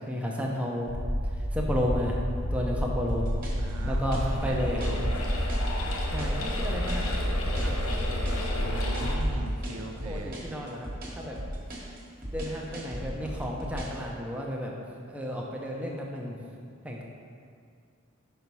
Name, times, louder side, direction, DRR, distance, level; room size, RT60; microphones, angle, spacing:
voice 1, 0.1-0.9 1.5-2.2 2.5-3.3 3.9-4.8 6.1-7.1 7.5-8.3 10.0-11.4 12.3-14.7 15.1-16.4 16.8-17.1, equal, 5° right, -2 dB, 0.7 m, -32 dB
sound 1, 0.9-9.4, equal, 50° left, 1.0 m, -30 dB
sound 2, 3.1-14.0, right 1 dB, 40° right, 1.3 m, -37 dB
voice 2, 3.6-5.2 7.5-7.8 8.6-10.3, right 2 dB, 85° right, 4 dB, 0.6 m, -40 dB
sound 3, 4.0-9.2, left 1 dB, 80° left, 0.9 m, -36 dB
5.6 x 4.6 x 5.4 m, 2.3 s
head